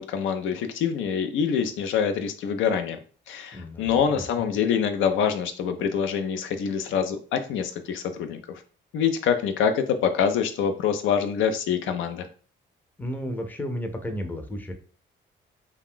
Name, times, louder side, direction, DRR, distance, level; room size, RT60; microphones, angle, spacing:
voice 1, 0.0-3.0 3.3-8.4 8.9-12.3, left 7 dB, 80° left, 8 dB, 0.4 m, -25 dB
voice 2, 3.5-4.5 13.0-14.7, equal, 10° left, 5 dB, 0.5 m, -33 dB
2.4 x 2.2 x 3.5 m, 0.41 s
cardioid pair, 90°, 20 cm